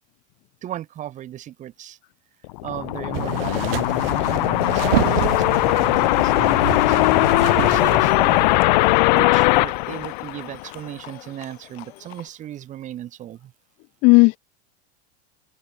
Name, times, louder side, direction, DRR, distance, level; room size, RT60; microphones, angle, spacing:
voice 1, 0.6-2.0 2.6-8.5 8.8-13.5, right 12 dB, 20° right, 5.9 m, -36 dB
sound 1, 2.4-10.8, left 22 dB, 40° left, 0.9 m, -19 dB
sound 2, 3.1-8.6, right 18 dB, 55° right, 0.7 m, -28 dB
Livestock farm animals working animals, 3.7-12.3, left 16 dB, 60° left, 5.7 m, -44 dB
voice 2, 14.0-14.4, left 28 dB, 20° left, 0.6 m, -16 dB
open air
supercardioid pair, 180°, 35 cm